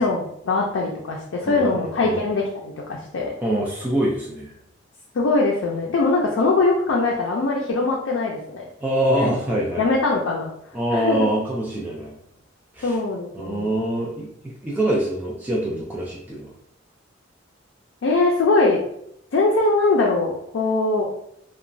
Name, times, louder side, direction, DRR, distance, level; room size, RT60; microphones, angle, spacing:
voice 1, 0.0-3.3 5.1-8.7 9.2-9.3 9.8-10.5 10.9-11.3 12.8-13.8 18.0-18.8 19.3-21.1, left 3 dB, 80° left, -1 dB, 0.4 m, -21 dB
voice 2, 1.4-2.2 3.4-4.5 8.8-9.9 10.7-12.1 12.7-13.0 13.3-14.3 14.6-16.5, right 1 dB, 10° right, -5 dB, 0.4 m, -24 dB
2.9 x 2.1 x 2.6 m, 0.76 s
head